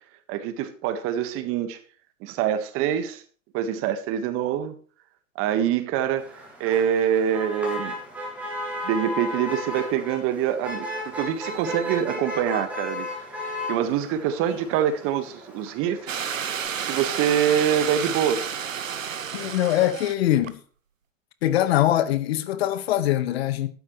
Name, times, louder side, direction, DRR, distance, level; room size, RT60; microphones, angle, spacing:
voice 1, 0.3-1.8 2.2-3.2 3.5-4.8 5.3-8.0 8.8-13.1 13.7-16.2 16.9-18.5, right 9 dB, 35° right, 1.5 m, -25 dB
Motor vehicle (road), 6.2-16.7, left 1 dB, 5° right, 7.6 m, -35 dB
sound 1, 16.1-20.1 20.4-20.5, right 7 dB, 85° right, 1.2 m, -31 dB
voice 2, 19.3-20.6 21.4-23.7, left 13 dB, 55° left, 1.4 m, -22 dB
13.5 x 12.5 x 3.2 m
hypercardioid pair, 115°, 38 cm